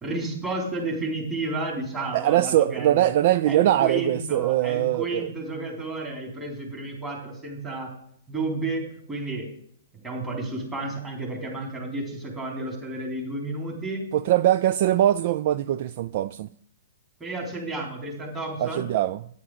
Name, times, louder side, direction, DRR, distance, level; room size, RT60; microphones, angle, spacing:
voice 1, 0.0-3.1 3.5-7.9 8.3-9.5 10.0-14.1 17.2-18.9, right 2 dB, 15° right, -1 dB, 3.8 m, -32 dB
voice 2, 2.1-5.3 14.1-16.5 18.6-19.2, right 13 dB, 50° right, 15 dB, 0.3 m, -22 dB
9.6 x 9.3 x 4.9 m, 0.66 s
hypercardioid pair, 130°, 0 cm